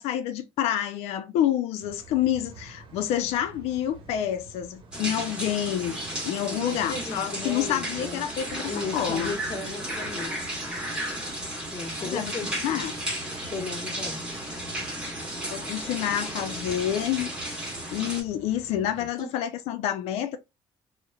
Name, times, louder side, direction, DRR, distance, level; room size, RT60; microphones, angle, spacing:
voice 1, 0.0-6.0 6.2-9.3 12.0-12.9 15.5-20.4, left 11 dB, 90° left, 0.4 m, -28 dB
sound 1, 1.8-19.1, right 3 dB, 55° right, 0.8 m, -48 dB
sound 2, 4.9-18.2, right 1 dB, 10° right, 1.1 m, -34 dB
voice 2, 6.5-8.2 8.7-10.3 11.7-12.8 13.5-14.2 19.2-19.3, left 3 dB, 40° left, 1.0 m, -36 dB
2.9 x 2.1 x 2.2 m
cardioid pair, 115°, 10 cm